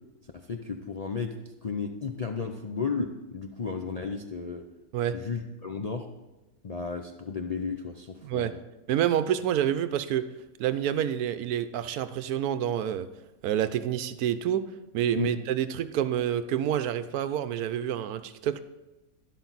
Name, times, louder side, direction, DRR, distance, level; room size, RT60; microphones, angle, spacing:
voice 1, 0.3-1.3 1.6-4.6 5.1-6.1 6.6-8.6 15.2-15.3, left 5 dB, 75° left, 3 dB, 0.3 m, -33 dB
voice 2, 8.2-8.5 8.9-10.3 10.6-13.1 13.4-14.6 14.9-18.6, right 10 dB, 80° right, 12 dB, 1.1 m, -28 dB
11.5 x 11.5 x 4.0 m, 1.1 s
omnidirectional pair, 1.6 m